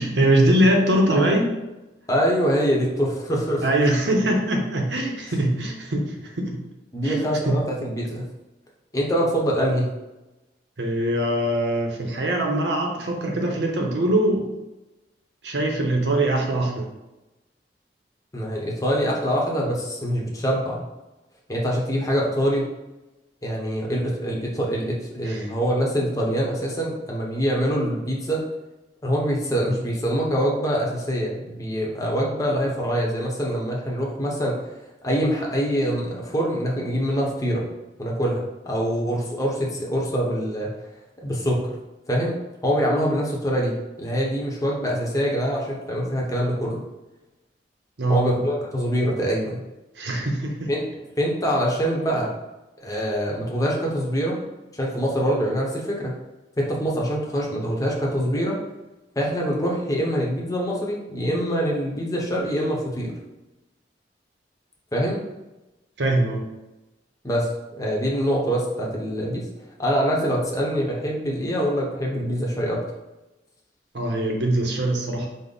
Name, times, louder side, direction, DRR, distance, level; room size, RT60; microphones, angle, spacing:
voice 1, 0.0-1.6 3.6-6.6 7.0-7.6 10.8-14.5 15.4-16.9 25.2-25.5 48.0-48.3 50.0-50.7 66.0-66.4 73.9-75.3, right 1 dB, 70° right, 1 dB, 0.8 m, -22 dB
voice 2, 2.1-3.6 6.9-8.2 8.9-9.9 18.3-20.9 21.5-22.6 23.4-28.4 29.0-34.6 35.0-37.7 38.0-40.7 41.2-41.7 42.1-42.3 42.6-46.8 48.1-49.6 50.7-50.8 51.2-52.3 52.8-54.4 54.7-56.1 56.6-58.6 59.2-63.1 64.9-65.2 67.2-69.5 69.8-72.8, equal, 20° left, -3 dB, 0.8 m, -24 dB
5.2 x 2.1 x 3.9 m, 1.0 s
head